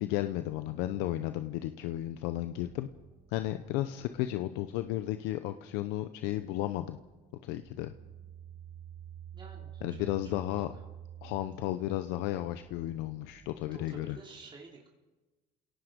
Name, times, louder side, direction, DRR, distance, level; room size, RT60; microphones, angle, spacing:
voice 1, 0.0-2.9 3.3-7.0 7.4-7.9 9.8-10.7 11.2-14.2, left 14 dB, 85° left, 10 dB, 0.8 m, -33 dB
sound 1, 0.8-14.2, right 9 dB, 65° right, 7.2 m, -52 dB
voice 2, 9.3-10.6 13.7-14.9, right 3 dB, 25° right, -2 dB, 3.9 m, -50 dB
29.5 x 18.0 x 5.2 m, 1.2 s
supercardioid pair, 90°, 17 cm